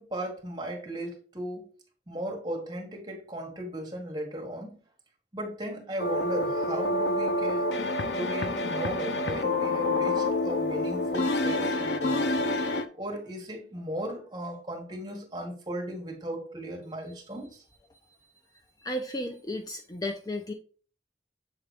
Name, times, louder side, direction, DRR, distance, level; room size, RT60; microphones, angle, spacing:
voice 1, 0.0-1.7 2.1-4.8 5.3-7.7 8.1-12.3 12.9-17.6, right 1 dB, 25° right, 0 dB, 1.6 m, -36 dB
sound 1, 6.0-12.8, left 2 dB, 70° left, 0.6 m, -27 dB
voice 2, 18.8-20.5, left 1 dB, 20° left, 4 dB, 0.5 m, -34 dB
7.3 x 3.9 x 3.3 m, 0.40 s
head